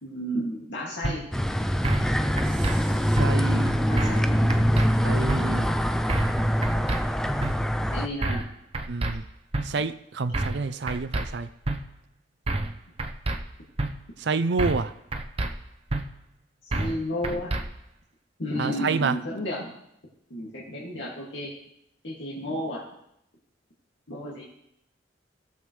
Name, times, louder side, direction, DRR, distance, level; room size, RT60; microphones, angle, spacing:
voice 1, 0.0-1.3 3.8-4.8 5.0-5.2 7.9-8.4 16.6-17.5 18.4-19.7 20.3-21.5 22.0-22.8 24.1-24.4, equal, 75° left, -6 dB, 2.2 m, -32 dB
sound 1, 1.0-1.2 1.8-2.1 2.4-2.8 3.2-3.3 4.0-4.2 4.5-4.9 5.3-5.4 6.1-6.4 6.6-7.0 7.4-7.5 8.2-8.5 8.7-9.1 9.5-9.7 10.3-10.6 10.9-11.3 11.7-11.8 12.5-12.7 13.0-13.4 13.8-13.9 14.6-14.9 15.1-15.5 15.9-16.0 16.7-17.0 17.2-17.6, right 2 dB, 35° right, 0.7 m, -27 dB
sound 2, 1.3-8.1, equal, 5° left, 0.4 m, -24 dB
voice 2, 3.2-3.8 5.0-5.7 8.9-9.2 9.6-11.5 14.2-14.9 18.6-19.2, right 4 dB, 65° right, 13 dB, 0.5 m, -28 dB
17.0 x 7.1 x 3.2 m, 0.76 s
head